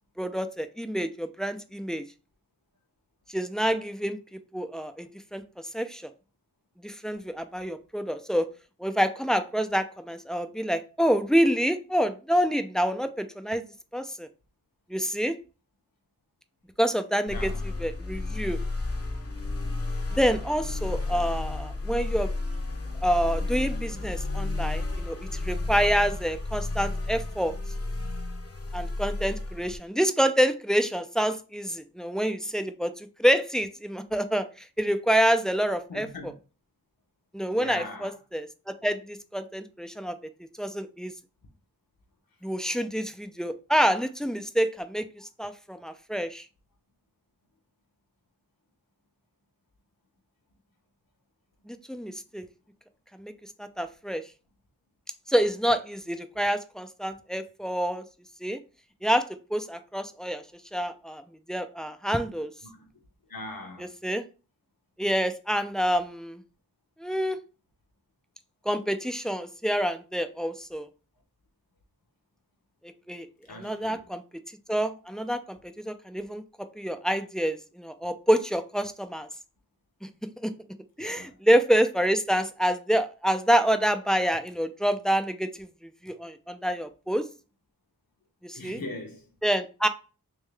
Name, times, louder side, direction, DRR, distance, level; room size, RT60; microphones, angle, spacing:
voice 1, 0.2-2.0 3.3-5.4 5.7-6.0 6.8-8.5 8.8-13.6 13.9-14.3 14.9-15.4 16.8-17.5 17.8-18.6 20.2-22.3 23.0-25.2 25.4-27.5 28.7-34.5 34.8-36.1 37.3-40.1 40.6-41.1 42.4-46.4 51.7-52.5 53.2-53.3 53.6-54.2 55.3-58.0 58.4-58.6 59.0-59.2 59.5-60.4 60.7-61.2 61.5-62.5 64.0-64.2 65.0-66.4 67.0-67.4 68.7-70.9 73.1-73.3 73.6-74.2 74.7-76.4 76.8-79.3 80.0-80.1 80.4-80.5 81.0-85.7 86.0-87.2 88.4-88.8 89.4-89.9, equal, ahead, 0.4 m, -27 dB
voice 2, 17.3-17.7 35.9-36.4 37.5-38.2 51.6-51.7 62.6-62.9 63.3-64.0 73.5-74.1 81.0-81.4 88.5-89.3, left 2 dB, 70° left, 1.1 m, -41 dB
sound 1, 17.3-29.8, left 2 dB, 40° left, 0.8 m, -32 dB
3.6 x 3.1 x 3.3 m
wide cardioid pair, 45°, 36 cm